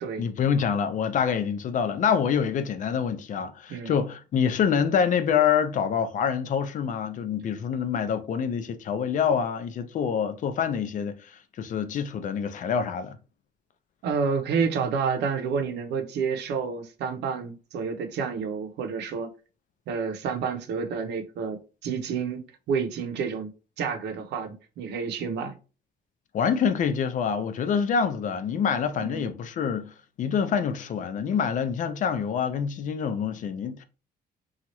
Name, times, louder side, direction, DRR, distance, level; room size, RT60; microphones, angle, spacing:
voice 1, 0.2-13.2 26.3-33.8, left 7 dB, 50° left, 0.4 m, -26 dB
voice 2, 14.0-19.3 19.9-23.5 23.8-25.5 29.0-29.3, right 5 dB, 85° right, 0.6 m, -29 dB
2.9 x 2.4 x 2.8 m
cardioid pair, 120°, 17 cm